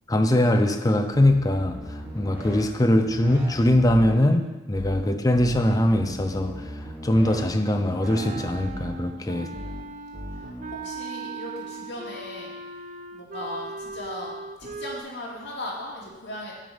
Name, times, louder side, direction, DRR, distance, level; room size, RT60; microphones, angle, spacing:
voice 1, 0.1-6.7 7.0-9.5, left 1 dB, 20° left, 6 dB, 0.6 m, -22 dB
sound 1, 1.1-2.6 2.9-4.1 4.7-5.0 5.3-7.4 7.7-8.9 9.5-9.8 10.1-10.7, equal, 10° right, 1.4 m, -38 dB
Wind instrument woodwind instrument, 8.0-15.0, right 3 dB, 40° right, 0.6 m, -38 dB
voice 2, 9.2-9.8 10.3-12.5 13.1-16.5, left 1 dB, 65° left, -4 dB, 2.5 m, -38 dB
7.4 x 5.1 x 7.1 m, 1.1 s
head